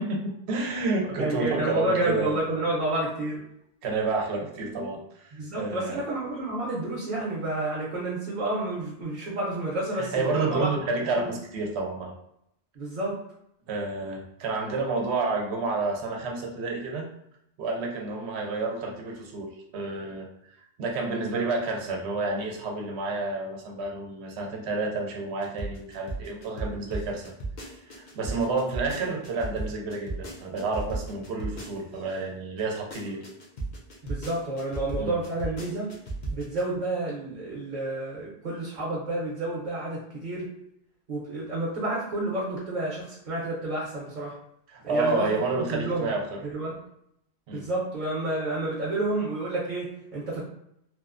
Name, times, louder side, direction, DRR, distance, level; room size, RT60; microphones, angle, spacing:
voice 1, 0.0-2.4 3.8-6.0 10.0-12.1 13.7-17.1 17.6-20.3 20.8-27.3 27.9-33.2 35.0-35.1 44.7-46.4 47.5-47.6, right 3 dB, 90° right, 1 dB, 0.9 m, -30 dB
voice 2, 1.2-3.4 5.3-10.7 11.2-11.3 12.7-13.2 34.0-35.9 36.3-40.5 41.1-44.4 44.8-46.1 46.4-46.8 47.5-50.4, right 2 dB, 50° right, -6 dB, 0.8 m, -30 dB
sound 1, 25.4-32.1 32.6-36.6, right 2 dB, 50° left, 0.7 m, -35 dB
2.9 x 2.0 x 2.4 m, 0.76 s
omnidirectional pair, 1.1 m